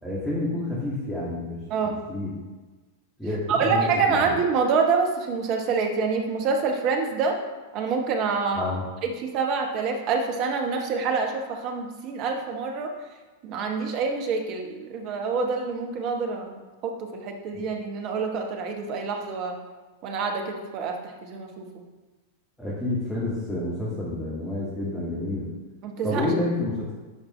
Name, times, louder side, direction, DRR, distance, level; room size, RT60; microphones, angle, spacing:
voice 1, 0.0-1.6 2.1-2.4 3.2-4.2 8.5-8.8 17.5-17.6 22.6-25.5 26.0-26.9, left 1 dB, 5° left, -8 dB, 2.0 m, -29 dB
voice 2, 3.5-7.4 7.7-8.7 9.0-12.9 13.4-19.5 20.0-21.7 25.8-26.3, right 5 dB, 40° right, 3 dB, 1.1 m, -26 dB
11.0 x 4.6 x 3.1 m, 1.2 s
figure-of-eight pair, 90°, 0 cm